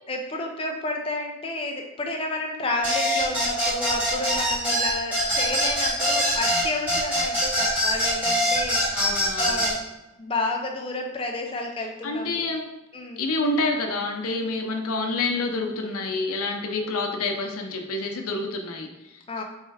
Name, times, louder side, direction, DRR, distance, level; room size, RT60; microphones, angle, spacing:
voice 1, 0.1-9.9 10.2-12.3 12.9-13.2 16.8-16.9 19.3-19.4, left 2 dB, 25° left, 2 dB, 0.5 m, -31 dB
sound 1, 2.8-9.7, equal, 10° right, 1.5 m, -23 dB
voice 2, 8.9-9.6 12.0-12.6 13.2-19.2, left 2 dB, 90° left, 3 dB, 0.6 m, -28 dB
4.4 x 3.2 x 3.4 m, 1.0 s
head